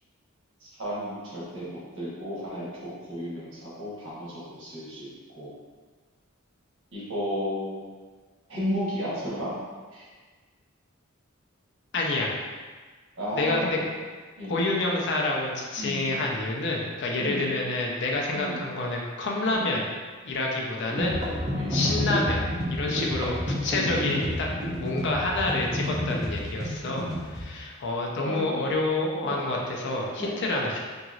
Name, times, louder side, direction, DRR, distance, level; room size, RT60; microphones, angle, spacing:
voice 1, 0.6-5.1 5.3-5.5 6.9-7.8 8.5-9.5 9.9-10.1 13.2-13.9 14.4-14.6 15.8-16.0 17.2-17.5 18.3-18.7 19.5-19.6 21.5-21.9 24.6-24.9 27.0-27.3 28.2-28.6 29.2-29.4 30.2-30.3, equal, 65° right, -8 dB, 1.1 m, -33 dB
voice 2, 11.9-12.3 13.3-13.8 14.5-19.9 20.2-21.2 21.7-22.4 22.7-24.5 24.8-30.9, left 2 dB, 55° left, -1 dB, 0.5 m, -28 dB
sound 1, 20.9-27.4, left 1 dB, 20° right, 0.5 m, -29 dB
2.9 x 2.7 x 2.4 m, 1.4 s
head